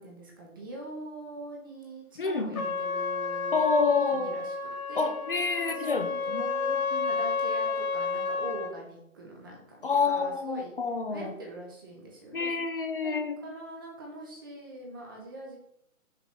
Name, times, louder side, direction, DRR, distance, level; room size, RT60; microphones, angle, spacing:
voice 1, 0.0-3.6 4.1-5.1 5.6-6.7 7.0-10.7 11.1-12.6 13.0-13.1 13.4-15.6, right 2 dB, 15° right, -1 dB, 0.8 m, -43 dB
voice 2, 2.2-2.6 3.5-4.4 5.0-7.1 9.8-11.3 12.3-13.4, left 4 dB, 40° left, 6 dB, 0.6 m, -28 dB
Trumpet, 2.5-8.8, left 4 dB, 80° left, 1.2 m, -31 dB
6.0 x 5.1 x 4.3 m, 0.75 s
hypercardioid pair, 165°, 42 cm